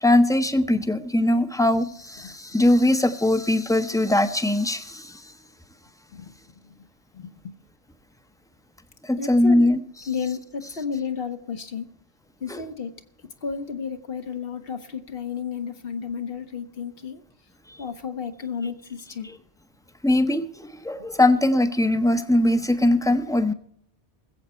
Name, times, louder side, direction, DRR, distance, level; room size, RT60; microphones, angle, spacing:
voice 1, 0.0-5.1 9.0-9.8 12.5-12.6 20.0-23.5, left 1 dB, 5° left, 10 dB, 0.6 m, -21 dB
voice 2, 7.1-7.5 9.1-9.7 10.1-11.9 12.4-12.9 13.4-17.2 17.8-19.3, left 6 dB, 65° left, 7 dB, 1.2 m, -32 dB
20.5 x 7.9 x 4.3 m, 0.69 s
omnidirectional pair, 1.1 m